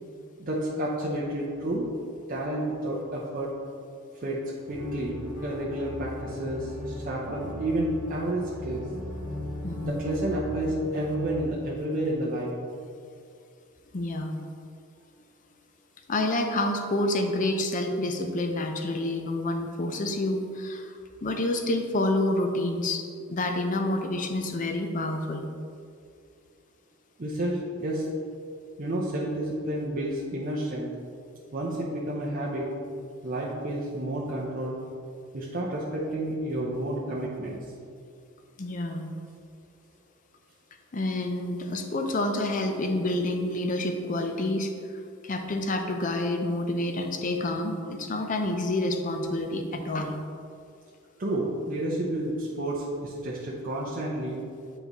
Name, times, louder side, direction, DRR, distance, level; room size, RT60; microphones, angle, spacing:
voice 1, 0.4-1.9 2.3-3.5 4.1-4.4 4.7-8.8 9.8-12.5 27.2-28.1 28.8-30.9 31.5-32.7 33.2-34.8 35.3-37.6 51.2-54.4, right 1 dB, 40° right, -5 dB, 0.6 m, -30 dB
sound 1, 4.7-11.4, left 1 dB, 15° right, 1.1 m, -38 dB
voice 2, 9.6-10.1 13.9-14.4 16.1-20.9 21.2-23.0 23.3-25.4 38.6-39.1 40.9-44.7 45.2-50.2, left 1 dB, 35° left, 5 dB, 0.5 m, -28 dB
9.2 x 3.9 x 3.0 m, 2.3 s
head